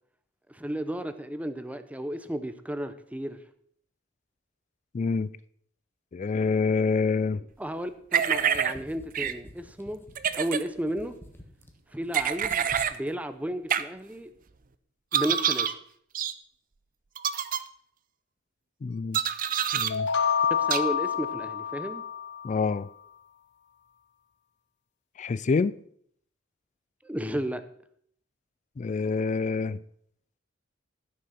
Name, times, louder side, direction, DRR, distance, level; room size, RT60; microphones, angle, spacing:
voice 1, 0.5-3.4 7.6-10.0 10.4-11.2 11.9-14.3 15.1-15.8 20.5-22.0 27.0-27.6, right 1 dB, 5° right, 11 dB, 0.7 m, -33 dB
voice 2, 4.9-5.3 6.1-7.5 18.8-19.2 19.7-20.1 22.4-22.9 25.2-25.7 28.8-29.8, left 4 dB, 40° left, 17 dB, 0.3 m, -26 dB
sound 1, 8.1-8.7 9.1-9.3 10.1-10.6 12.1-12.9 13.7-13.8 15.1-15.7 16.1-16.3 17.2-17.6 19.1-19.9 20.7-20.8, right 8 dB, 45° right, 0.6 m, -26 dB
sound 2, 8.2-11.7 12.0-12.9, left 1 dB, 10° left, 1.4 m, -49 dB
sound 3, 19.9-22.7, left 7 dB, 60° left, 0.7 m, -28 dB
13.5 x 6.4 x 5.8 m, 0.64 s
head